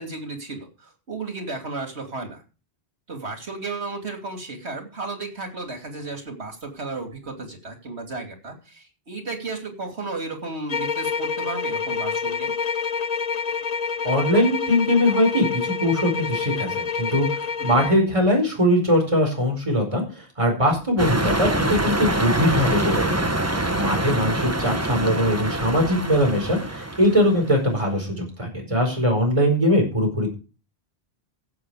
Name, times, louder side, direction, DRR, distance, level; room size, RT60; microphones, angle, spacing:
voice 1, 0.0-2.4 3.1-12.5 17.6-17.9 23.5-23.9, right 3 dB, 90° right, 5 dB, 3.1 m, -34 dB
sound 1, 10.7-18.1, left 5 dB, 45° left, 0.8 m, -27 dB
voice 2, 14.0-23.3 23.7-30.3, equal, 30° right, 2 dB, 5.0 m, -21 dB
sound 2, 21.0-27.5, right 1 dB, 15° right, 1.1 m, -25 dB
16.0 x 8.0 x 4.9 m, 0.34 s
omnidirectional pair, 1.1 m